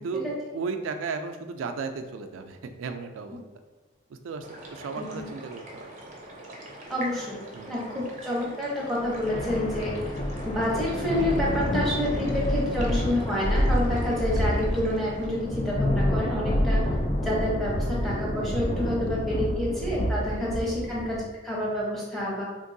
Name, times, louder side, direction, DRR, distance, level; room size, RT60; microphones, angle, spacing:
voice 1, 0.0-3.4 4.1-5.9 7.5-7.7 12.1-12.3 19.1-19.2 20.3-20.6, right 4 dB, 90° right, 7 dB, 0.3 m, -35 dB
sound 1, 4.4-15.6, right 1 dB, 40° right, 0.5 m, -44 dB
voice 2, 6.9-7.4 7.7-10.1 10.4-22.4, left 1 dB, ahead, -7 dB, 0.8 m, -29 dB
sound 2, 9.0-21.2, equal, 30° left, 0.4 m, -28 dB
3.6 x 2.6 x 2.6 m, 1.2 s
head